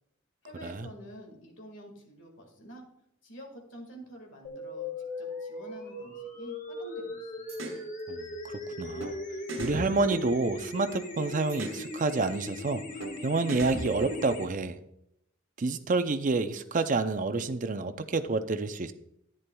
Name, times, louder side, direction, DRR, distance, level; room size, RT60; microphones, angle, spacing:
voice 1, 0.4-2.9 3.2-7.6, right 1 dB, 70° left, 3 dB, 1.9 m, -48 dB
sound 1, 4.4-14.4, left 2 dB, 40° left, 1.2 m, -39 dB
sound 2, 7.5-7.8 9.0-9.1 9.5-10.9 11.5-11.8 13.0-13.1 13.5-14.6, right 1 dB, 65° right, 1.3 m, -38 dB
voice 2, 8.1-9.1 9.6-12.8 13.2-14.8 15.6-18.9, right 3 dB, 40° right, 10 dB, 0.5 m, -29 dB
11.0 x 9.8 x 2.3 m, 0.77 s
head